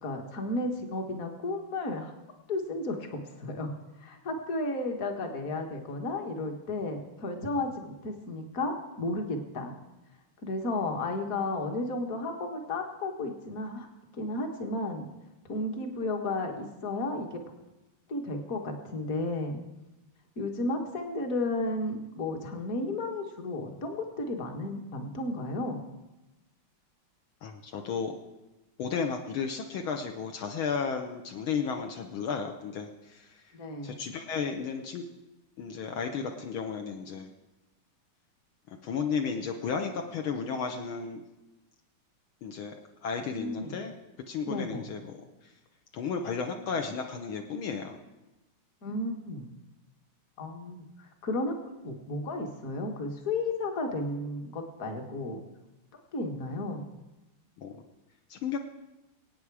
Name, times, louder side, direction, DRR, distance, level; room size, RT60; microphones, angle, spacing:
voice 1, 0.0-2.1 2.5-3.7 4.0-9.8 10.4-13.9 14.2-15.1 15.5-17.4 18.1-19.6 20.4-25.8 33.5-34.0 43.3-43.8 44.4-44.8 48.8-49.5 50.4-51.6 51.8-55.4 56.1-56.8, left 2 dB, 40° left, 3 dB, 1.8 m, -33 dB
voice 2, 27.4-28.2 28.8-33.5 33.8-35.0 35.6-37.3 38.7-41.2 42.4-42.8 43.0-43.9 44.3-45.5 45.9-48.0 57.6-57.8 58.3-58.6, left 6 dB, 70° left, 3 dB, 1.7 m, -33 dB
24.0 x 9.0 x 4.8 m, 1.0 s
omnidirectional pair, 2.4 m